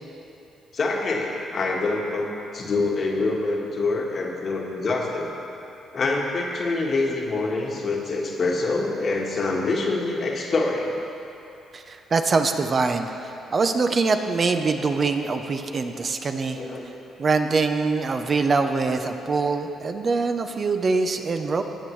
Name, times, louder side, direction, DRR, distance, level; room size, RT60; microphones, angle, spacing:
voice 1, 0.7-2.3 2.5-5.3 5.9-11.0 16.5-16.9, left 3 dB, 50° left, 0 dB, 1.4 m, -25 dB
voice 2, 11.7-13.1 13.5-16.6 17.2-21.6, right 4 dB, 40° right, 6 dB, 0.6 m, -23 dB
17.5 x 7.0 x 3.2 m, 2.8 s
cardioid pair, 90°, 0 cm